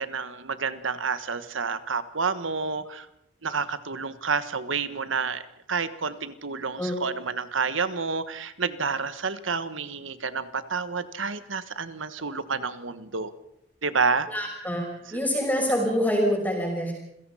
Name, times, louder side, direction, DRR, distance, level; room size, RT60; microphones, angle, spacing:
voice 1, 0.0-3.1 3.4-5.4 5.7-13.3 13.8-14.3, right 5 dB, 85° right, 13 dB, 1.4 m, -29 dB
voice 2, 14.3-16.9, equal, 10° left, 0 dB, 5.9 m, -26 dB
28.5 x 16.5 x 5.7 m, 0.81 s
head